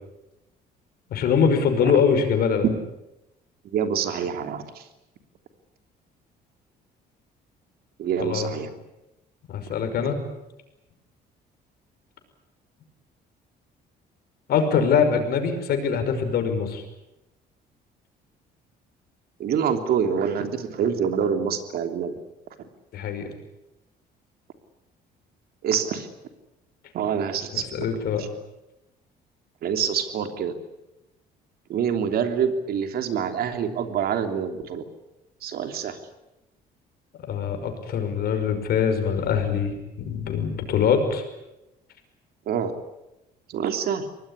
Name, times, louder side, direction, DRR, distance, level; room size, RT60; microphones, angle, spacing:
voice 1, 1.1-2.7 8.2-8.5 9.5-10.2 14.5-16.8 22.9-23.3 27.5-28.2 37.3-41.2, left 6 dB, 65° left, 7 dB, 5.7 m, -23 dB
voice 2, 3.7-4.8 8.0-8.7 19.4-22.1 25.6-26.1 26.9-27.6 28.2-28.3 29.6-30.5 31.7-34.8 35.4-36.0 42.5-42.7 43.5-44.1, right 7 dB, 65° right, 7 dB, 3.2 m, -26 dB
24.5 x 19.5 x 9.9 m, 0.93 s
cardioid pair, 110°, 17 cm